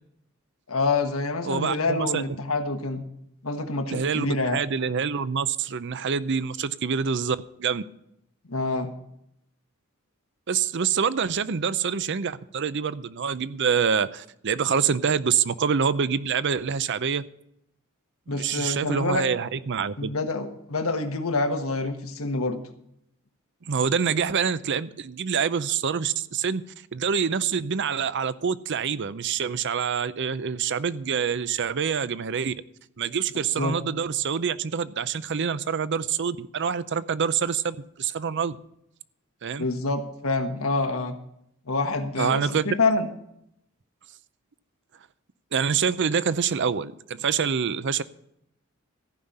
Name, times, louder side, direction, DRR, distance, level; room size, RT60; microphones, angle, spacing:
voice 1, 0.7-3.0 3.4-4.6 8.5-8.9 18.3-19.2 20.0-22.6 33.6-33.8 39.6-41.2 41.7-43.1, left 3 dB, 80° left, 6 dB, 1.4 m, -27 dB
voice 2, 1.5-2.2 3.9-7.8 10.5-17.2 18.3-20.1 23.7-26.6 26.9-32.5 33.0-38.6 39.4-39.6 42.2-42.7 45.5-48.0, right 6 dB, 55° right, 15 dB, 0.6 m, -26 dB
14.5 x 5.7 x 8.9 m, 0.77 s
head